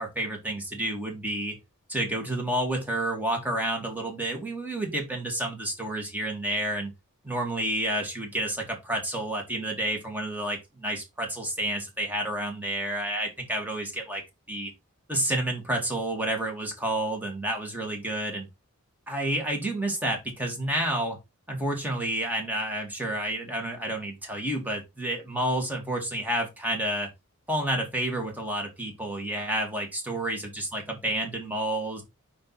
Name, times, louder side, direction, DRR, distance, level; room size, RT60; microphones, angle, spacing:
voice 1, 0.0-1.6 1.9-6.9 7.2-14.2 14.5-14.7 15.1-18.5 19.1-21.2 21.5-27.1 27.5-32.0, right 1 dB, 10° right, 2.1 m, -30 dB
5.9 x 5.2 x 4.1 m
head